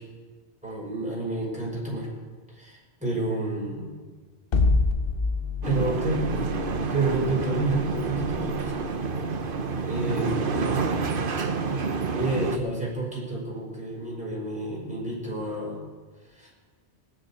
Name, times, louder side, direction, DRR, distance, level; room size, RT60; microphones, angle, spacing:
voice 1, 0.6-2.1 2.5-3.9 5.6-6.2 6.9-8.7 9.9-10.6 12.1-15.8 16.3-16.5, right 2 dB, 5° right, -4 dB, 5.4 m, -29 dB
sound 1, 4.5-10.7, left 3 dB, 60° left, 1.1 m, -28 dB
sound 2, 5.6-12.6, right 4 dB, 55° right, 1.1 m, -28 dB
19.0 x 6.6 x 9.8 m, 1.4 s
omnidirectional pair, 1.1 m